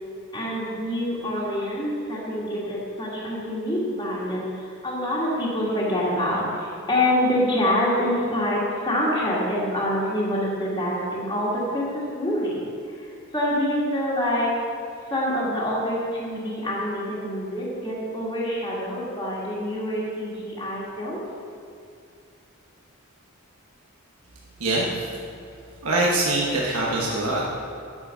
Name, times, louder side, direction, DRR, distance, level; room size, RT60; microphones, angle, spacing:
voice 1, 0.3-14.6 15.1-21.2, left 1 dB, 20° left, -7 dB, 1.8 m, -26 dB
voice 2, 24.6-25.1 25.8-27.5, right 2 dB, 85° right, -4 dB, 1.2 m, -23 dB
9.9 x 6.8 x 5.6 m, 2.5 s
head